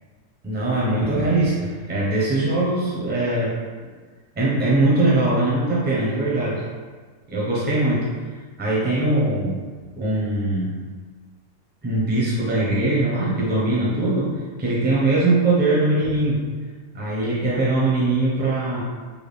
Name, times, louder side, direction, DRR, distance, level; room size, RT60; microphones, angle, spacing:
voice 1, 0.4-3.5 4.4-6.6 7.3-8.1 8.6-9.6 10.0-10.8 11.8-14.3 14.6-16.4 16.9-18.8, right 2 dB, 15° right, -7 dB, 0.4 m, -21 dB
3.6 x 2.3 x 3.3 m, 1.5 s
omnidirectional pair, 1.7 m